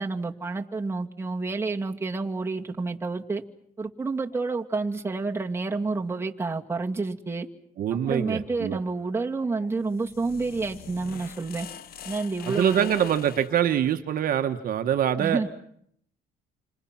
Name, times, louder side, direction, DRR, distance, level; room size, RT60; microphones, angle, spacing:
voice 1, 0.0-3.4 3.8-7.5 7.9-11.7 12.0-12.9 15.2-15.5, right 3 dB, 15° right, 1 dB, 2.2 m, -29 dB
sound 1, 2.6-2.7 4.3-5.2 8.0-9.7, left 4 dB, 90° left, 5.1 m, -52 dB
voice 2, 7.8-8.8 12.4-15.4, right 10 dB, 60° right, 7 dB, 1.5 m, -24 dB
sound 2, 9.8-13.6, left 9 dB, 65° left, 1.5 m, -43 dB
29.0 x 26.0 x 6.0 m, 0.70 s
cardioid pair, 110°, 17 cm